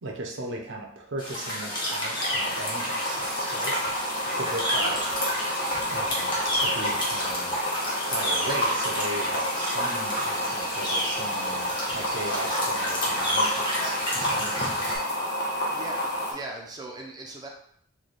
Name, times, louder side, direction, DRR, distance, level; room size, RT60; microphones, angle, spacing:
voice 1, 0.0-3.8 4.3-4.9 5.9-7.6 8.1-14.9, right 2 dB, 65° right, 1 dB, 0.6 m, -37 dB
sound 1, 1.2-15.0, equal, 25° left, 0.8 m, -30 dB
sound 2, 2.2-16.3, equal, 50° left, 1.0 m, -30 dB
voice 2, 4.8-5.1 15.7-17.5, right 2 dB, 20° right, 1 dB, 0.5 m, -39 dB
3.2 x 2.2 x 4.0 m, 0.67 s
head